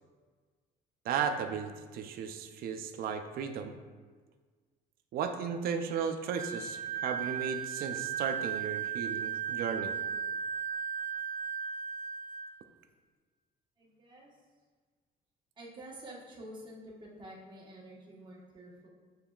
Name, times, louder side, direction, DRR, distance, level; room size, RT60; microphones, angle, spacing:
voice 1, 1.1-3.7 5.1-9.9, right 6 dB, 65° right, 6 dB, 0.5 m, -35 dB
Wind instrument woodwind instrument, 6.3-12.5, right 7 dB, 30° left, 0.8 m, -36 dB
voice 2, 13.8-14.3 15.6-18.9, right 1 dB, 30° right, -4 dB, 1.3 m, -49 dB
6.8 x 3.2 x 2.3 m, 1.5 s
cardioid pair, 110°, 17 cm